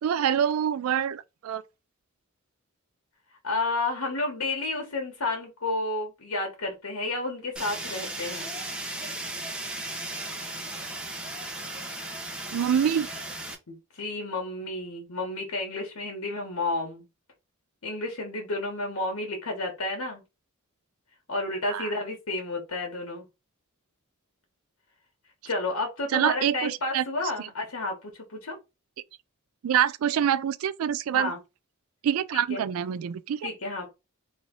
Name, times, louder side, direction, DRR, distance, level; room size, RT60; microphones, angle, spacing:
voice 1, 0.0-1.6 12.5-13.1 21.7-21.9 26.1-27.0 27.4-27.5 29.6-31.3 32.0-33.5, right 9 dB, 75° right, 0.3 m, -26 dB
voice 2, 3.4-8.5 13.7-17.0 17.8-20.2 21.3-23.2 25.4-28.6 31.1-31.4 32.3-32.6 33.4-33.9, left 2 dB, 75° left, 1.2 m, -31 dB
Fire, 7.6-13.6, right 2 dB, 5° right, 0.7 m, -36 dB
3.1 x 2.6 x 3.7 m
head